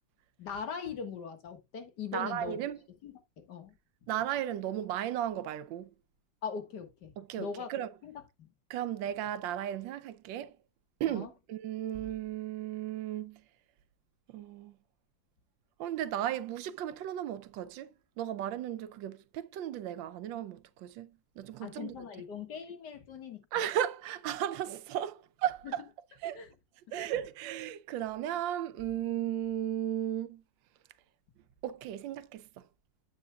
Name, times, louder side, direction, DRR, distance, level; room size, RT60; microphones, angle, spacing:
voice 1, 0.4-2.6 3.0-3.8 6.4-7.1 7.4-7.7 8.0-8.5 11.1-11.3 21.6-23.6 25.6-25.8 26.3-26.5 26.9-27.1, left 6 dB, 65° left, 2.1 m, -41 dB
voice 2, 2.1-2.8 4.1-5.9 7.2-7.9 8.7-10.5 11.0-13.4 14.3-14.7 15.8-17.9 18.2-21.1 21.4-21.9 23.5-25.8 26.2-26.4 26.9-30.4 31.6-32.5, right 11 dB, 85° right, 1.4 m, -35 dB
9.4 x 8.1 x 2.3 m
omnidirectional pair, 2.0 m